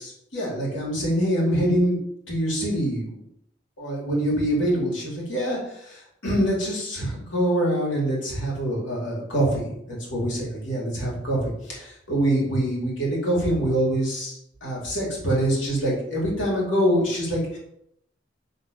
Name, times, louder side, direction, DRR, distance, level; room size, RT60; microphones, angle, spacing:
voice 1, 0.0-2.0 2.3-3.2 3.8-14.4 14.6-17.6, right 1 dB, 80° left, -4 dB, 2.8 m, -25 dB
6.7 x 4.0 x 5.2 m, 0.75 s
head